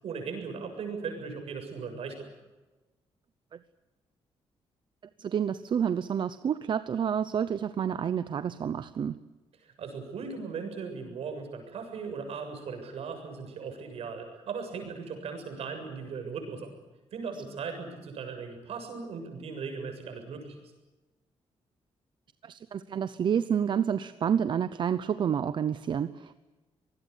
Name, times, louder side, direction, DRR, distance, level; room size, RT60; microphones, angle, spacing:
voice 1, 0.0-2.3 9.6-16.7 17.1-20.6, right 5 dB, 70° right, 5 dB, 7.2 m, -38 dB
voice 2, 5.2-9.2 22.4-26.3, right 8 dB, 50° right, 13 dB, 0.8 m, -29 dB
26.0 x 20.0 x 8.4 m, 1.1 s
wide cardioid pair, 165°, 11 cm